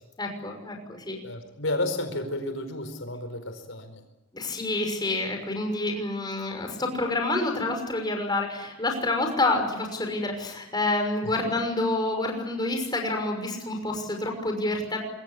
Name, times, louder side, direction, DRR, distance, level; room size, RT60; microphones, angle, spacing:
voice 1, 0.2-1.2 4.3-15.0, left 2 dB, 20° left, 3 dB, 6.1 m, -28 dB
voice 2, 1.2-4.0 11.4-11.6, left 1 dB, 75° left, 7 dB, 4.6 m, -32 dB
26.5 x 22.5 x 8.3 m, 0.99 s
head